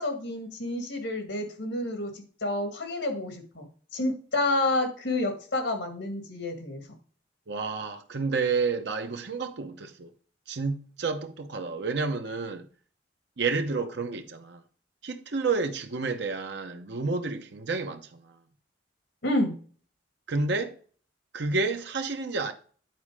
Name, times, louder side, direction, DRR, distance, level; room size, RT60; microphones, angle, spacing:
voice 1, 0.0-3.7 3.9-6.8 19.2-19.6, left 2 dB, 85° left, 2.1 m, -29 dB
voice 2, 7.5-10.1 10.5-12.7 13.4-14.6 15.0-18.4 20.3-20.7 21.3-22.5, right 4 dB, 65° right, 0.8 m, -30 dB
9.3 x 4.2 x 4.9 m
head